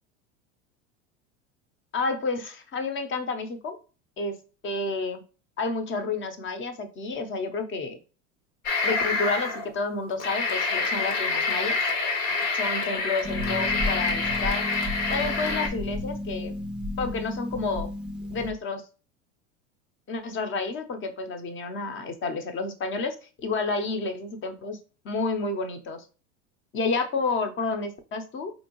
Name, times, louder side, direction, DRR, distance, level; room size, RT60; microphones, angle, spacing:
voice 1, 1.9-3.8 4.2-4.4 4.6-5.2 5.6-8.0 8.8-11.8 12.5-14.6 15.1-16.5 17.0-17.9 18.3-18.8 20.1-23.1 23.4-24.8 25.0-26.0 26.7-28.5, left 3 dB, 30° left, 7 dB, 0.8 m, -30 dB
sound 1, 8.7-9.7 10.1-15.7, left 4 dB, 70° left, 1.1 m, -27 dB
Harp, 13.2-18.5, left 1 dB, ahead, 0.5 m, -32 dB
4.1 x 2.7 x 3.0 m, 0.36 s
hypercardioid pair, 90°, 38 cm